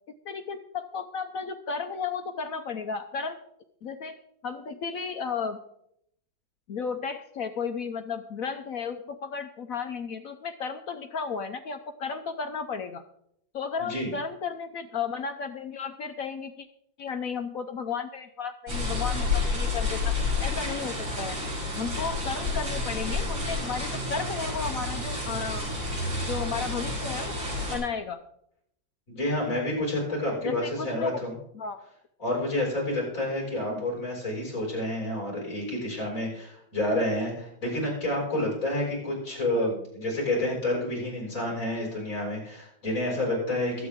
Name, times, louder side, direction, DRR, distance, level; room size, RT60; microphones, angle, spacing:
voice 1, 0.2-3.4 3.8-5.6 6.7-13.0 13.5-16.7 17.0-21.4 21.8-25.7 26.3-27.3 27.7-28.2 30.4-31.2 31.5-31.8 33.7-33.9 39.5-39.7, left 5 dB, 65° left, 7 dB, 0.9 m, -34 dB
voice 2, 13.8-14.1 29.1-31.3 32.2-43.9, left 1 dB, 40° left, -3 dB, 6.4 m, -29 dB
sound 1, 18.7-27.8, left 3 dB, 75° right, 6.2 m, -30 dB
22.0 x 8.3 x 3.6 m, 0.74 s
omnidirectional pair, 2.1 m